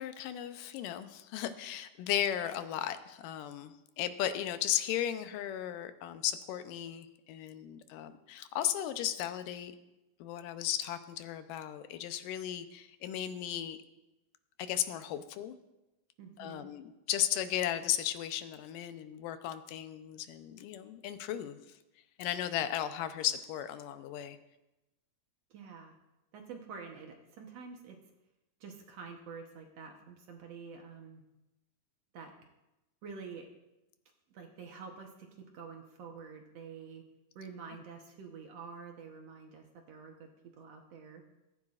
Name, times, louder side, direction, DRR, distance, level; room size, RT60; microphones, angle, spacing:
voice 1, 0.0-9.7 10.2-13.8 14.6-15.6 16.4-21.6 22.2-24.4, left 11 dB, 90° left, 10 dB, 2.4 m, -35 dB
voice 2, 16.2-16.7 25.5-26.0 26.3-28.0 28.6-31.2 32.1-32.3 33.0-33.5 34.3-37.0 37.4-41.2, right 5 dB, 65° right, 2 dB, 1.9 m, -48 dB
16.5 x 14.5 x 2.5 m, 0.98 s
omnidirectional pair, 3.7 m